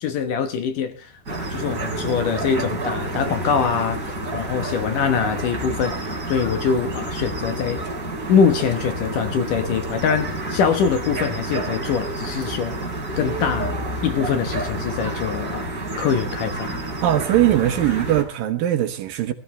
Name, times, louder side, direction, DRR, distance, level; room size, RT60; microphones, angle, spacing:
voice 1, 0.0-4.0 4.3-7.8 8.3-12.9 13.2-15.7 16.0-16.8, left 7 dB, 65° left, 2.4 m, -23 dB
sound 1, 1.3-18.2, right 1 dB, 20° right, 3.8 m, -29 dB
voice 2, 17.0-19.3, right 12 dB, 70° right, 2.5 m, -20 dB
19.0 x 13.0 x 3.3 m
omnidirectional pair, 4.6 m